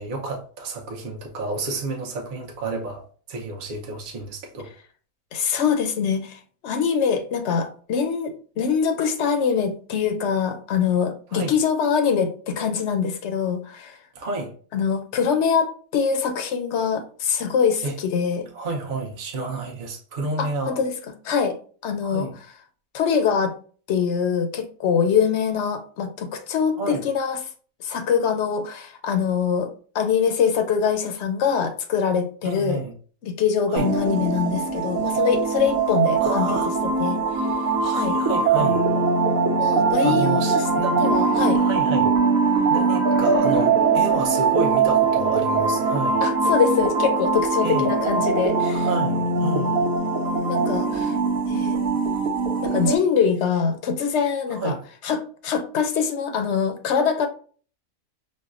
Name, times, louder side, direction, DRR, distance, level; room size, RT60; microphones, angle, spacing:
voice 1, 0.0-3.0 3.3-4.7 11.3-11.5 14.1-14.5 17.8-17.9 18.5-20.8 22.0-22.3 26.8-27.0 32.4-32.9 33.7-33.9 36.2-36.7 37.8-38.8 40.0-41.0 41.5-42.2 42.7-46.2 47.6-48.0 48.7-49.8 54.5-54.8, right 3 dB, 45° right, 0.7 m, -30 dB
voice 2, 5.3-14.0 14.7-18.5 20.4-20.9 21.2-21.6 21.8-22.3 22.9-23.5 23.9-27.4 27.8-29.7 29.9-32.8 33.2-36.6 37.0-37.5 38.0-38.2 39.6-40.7 41.0-41.6 46.2-48.9 50.5-51.2 51.5-51.8 52.6-54.8 55.0-57.3, left 6 dB, 65° left, 0.7 m, -23 dB
sound 1, 33.8-53.0, right 4 dB, 85° right, 1.1 m, -21 dB
5.3 x 2.1 x 2.4 m
omnidirectional pair, 1.5 m